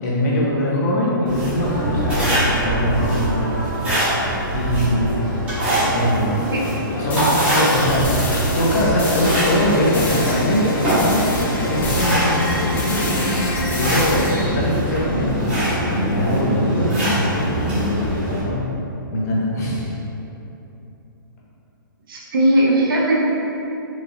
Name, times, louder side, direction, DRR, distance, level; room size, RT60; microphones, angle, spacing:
voice 1, 0.0-3.5 3.8-4.2 4.5-5.2 5.9-6.4 6.9-7.2 7.5-8.1 8.5-13.0 13.8-17.7 18.3-18.8 19.1-19.9, equal, 45° left, -5 dB, 0.9 m, -22 dB
sound 1, 1.2-18.4, equal, 15° right, 1.3 m, -22 dB
sound 2, 7.1-9.6 9.9-10.4 10.9-14.6, left 2 dB, 15° left, 0.6 m, -29 dB
sound 3, 9.3-13.7, left 1 dB, 65° left, 0.5 m, -32 dB
voice 2, 22.1-23.2, right 1 dB, 75° right, -4 dB, 0.9 m, -18 dB
4.7 x 2.6 x 2.6 m, 3.0 s
hypercardioid pair, 145°, 12 cm